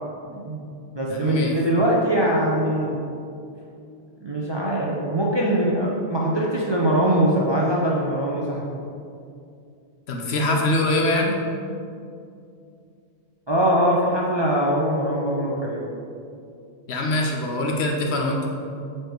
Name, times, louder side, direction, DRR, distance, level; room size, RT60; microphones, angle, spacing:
voice 1, 0.3-0.6 0.9-3.0 4.2-8.6 13.5-15.9, right 1 dB, 30° right, -4 dB, 0.5 m, -22 dB
voice 2, 1.1-1.5 10.1-11.3 16.9-18.5, left 1 dB, 70° left, 1 dB, 1.0 m, -23 dB
4.9 x 4.4 x 4.5 m, 2.5 s
omnidirectional pair, 1.2 m